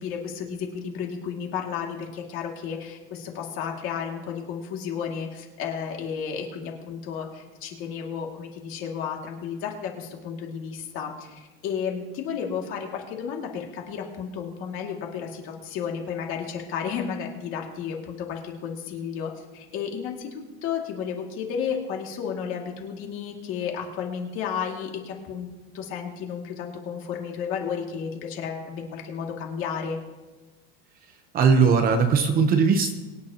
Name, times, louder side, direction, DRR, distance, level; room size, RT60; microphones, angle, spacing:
voice 1, 0.0-30.0, left 7 dB, 45° left, 1 dB, 2.3 m, -32 dB
voice 2, 31.3-32.9, right 5 dB, 30° right, 7 dB, 0.9 m, -19 dB
23.5 x 9.7 x 2.9 m, 1.2 s
cardioid pair, 165°, 30 cm